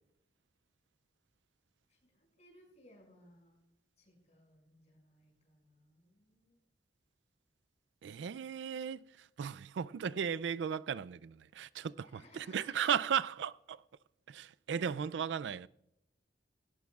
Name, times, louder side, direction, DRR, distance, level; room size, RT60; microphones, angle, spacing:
voice 1, 1.9-3.6 4.0-6.6 12.0-13.0, left 1 dB, 40° left, 6.1 m, -63 dB
voice 2, 8.0-9.0 9.4-12.2 12.5-13.8 14.3-15.7, right 8 dB, 85° right, 0.4 m, -35 dB
18.5 x 17.0 x 2.4 m
head